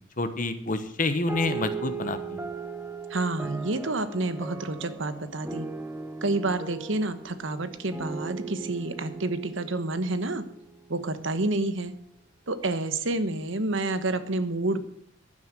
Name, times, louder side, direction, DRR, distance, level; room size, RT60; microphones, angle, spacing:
voice 1, 0.2-2.4, left 2 dB, 40° left, 10 dB, 1.1 m, -28 dB
sound 1, 1.3-11.0, right 4 dB, 10° right, 1.0 m, -38 dB
voice 2, 3.1-5.7 6.2-10.4 10.9-11.9 12.5-14.8, right 2 dB, 65° right, 11 dB, 1.2 m, -29 dB
11.5 x 9.5 x 7.6 m, 0.67 s
head